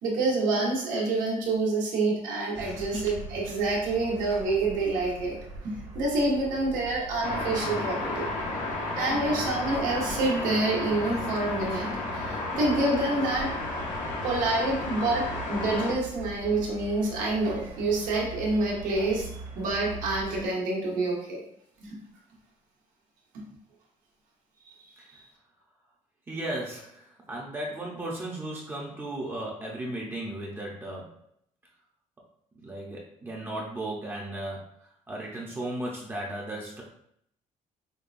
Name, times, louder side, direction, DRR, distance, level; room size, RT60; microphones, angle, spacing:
voice 1, 0.0-5.3 5.6-8.2 9.0-11.9 12.1-21.4 21.8-22.0 24.6-24.8 25.1-25.2, right 2 dB, 85° right, -3 dB, 1.2 m, -27 dB
sound 1, 2.5-20.5, right 3 dB, 60° right, 1.4 m, -43 dB
sound 2, 7.2-15.9, left 2 dB, 70° left, 0.9 m, -32 dB
voice 2, 26.3-31.1 32.6-36.8, right 1 dB, 15° right, -3 dB, 0.7 m, -35 dB
5.2 x 2.3 x 2.5 m, 0.69 s
cardioid pair, 150°, 13 cm